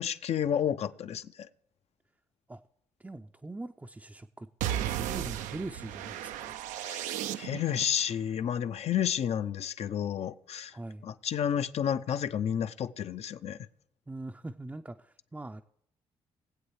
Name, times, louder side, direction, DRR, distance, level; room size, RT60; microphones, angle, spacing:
voice 1, 0.0-1.5 6.8-10.8 11.0-13.6, left 9 dB, 55° left, 0.5 m, -31 dB
voice 2, 3.0-4.5 4.8-6.5 10.7-11.0 14.1-15.6, right 2 dB, 10° right, 0.4 m, -42 dB
sound 1, 4.6-7.9, right 11 dB, 80° right, 0.4 m, -35 dB
19.5 x 8.0 x 3.2 m
hypercardioid pair, 50°, 13 cm